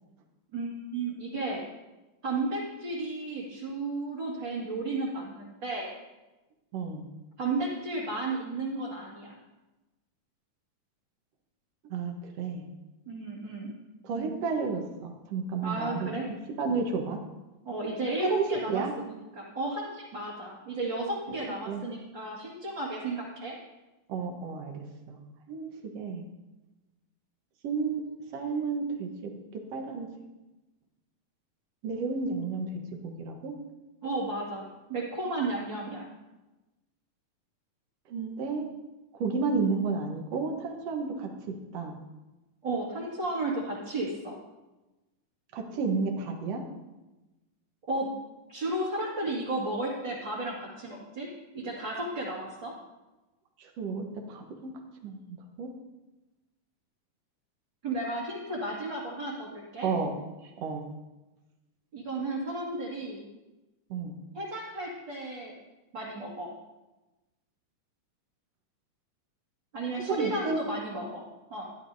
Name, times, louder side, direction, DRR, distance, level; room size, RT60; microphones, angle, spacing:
voice 1, 0.5-1.7 2.2-5.9 7.4-9.4 13.1-13.7 15.6-16.3 17.6-23.5 34.0-36.1 42.6-44.4 47.9-48.1 48.5-51.3 51.5-52.7 57.8-59.9 61.9-63.2 64.3-65.6 65.9-66.5 69.7-71.6, right 2 dB, 40° right, -6 dB, 2.0 m, -33 dB
voice 2, 6.7-7.0 11.9-12.6 14.0-16.1 16.6-17.2 18.2-18.9 21.3-21.4 21.7-21.8 24.1-25.2 25.5-25.7 25.9-26.2 27.6-28.0 28.3-29.3 29.7-30.1 31.8-32.7 33.0-33.5 38.1-38.7 39.1-41.3 41.7-42.0 45.5-46.6 53.6-54.7 55.0-55.7 59.8-60.1 60.4-60.8 63.9-64.1 70.1-70.6, right 4 dB, 60° right, 2 dB, 1.7 m, -31 dB
15.5 x 10.5 x 2.7 m, 1.1 s
omnidirectional pair, 4.2 m